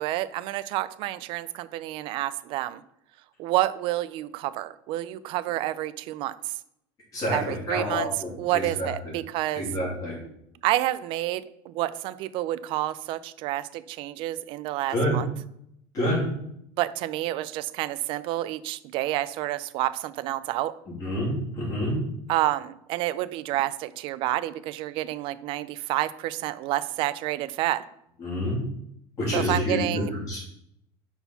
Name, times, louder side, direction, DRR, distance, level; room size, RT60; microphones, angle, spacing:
voice 1, 0.0-2.8 3.4-6.5 7.3-8.1 8.4-9.7 10.6-15.3 16.8-20.7 22.3-27.8 29.3-30.1, right 15 dB, 45° right, 15 dB, 0.3 m, -29 dB
voice 2, 7.1-8.9 9.5-10.1 14.9-15.1 15.9-16.2 21.0-22.0 28.2-28.6 29.2-30.0 30.3-30.4, equal, 30° left, -5 dB, 2.9 m, -27 dB
5.4 x 4.2 x 5.7 m, 0.76 s
cardioid pair, 170°, 13 cm